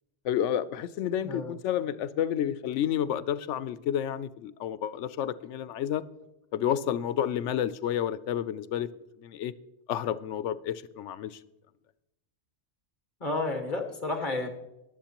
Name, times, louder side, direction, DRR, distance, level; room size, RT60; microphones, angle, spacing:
voice 1, 0.2-6.0 6.5-8.9 9.2-9.5 9.9-11.4, left 10 dB, 90° left, 0.9 m, -30 dB
voice 2, 1.2-1.5 13.2-14.5, left 2 dB, 45° left, 1.8 m, -31 dB
22.0 x 7.5 x 2.9 m
omnidirectional pair, 1.2 m